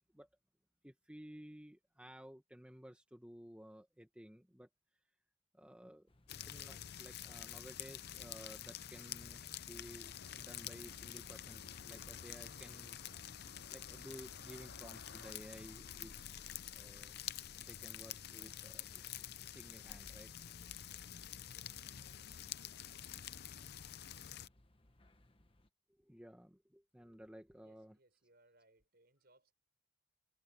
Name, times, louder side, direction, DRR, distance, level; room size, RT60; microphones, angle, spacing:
voice 1, 0.8-4.7 5.5-13.0 13.7-16.5 16.7-17.1 17.6-20.3 26.0-28.0, equal, 5° right, 1.5 m, -55 dB
sound 1, 6.1-25.7, left 1 dB, 25° left, 1.3 m, -69 dB
sound 2, 6.3-24.5, left 10 dB, 55° left, 0.6 m, -48 dB
sound 3, 10.1-15.3, left 2 dB, 80° left, 2.5 m, -59 dB
voice 2, 27.5-29.5, right 2 dB, 50° right, 6.1 m, -70 dB
head